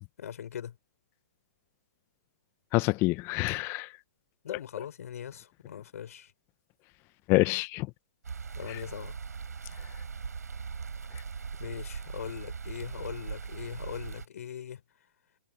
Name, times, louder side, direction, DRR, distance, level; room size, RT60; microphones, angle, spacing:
voice 1, 0.2-0.8 4.4-6.3 8.5-9.2 11.6-14.8, left 9 dB, 65° left, 6.4 m, -40 dB
voice 2, 2.7-4.0 4.5-4.6 7.3-7.9 8.7-8.8 9.8-9.9 11.1-11.2, left 22 dB, 30° left, 0.9 m, -27 dB
sound 1, 8.2-14.3, right 5 dB, 90° right, 7.9 m, -40 dB
hypercardioid pair, 140°, 9 cm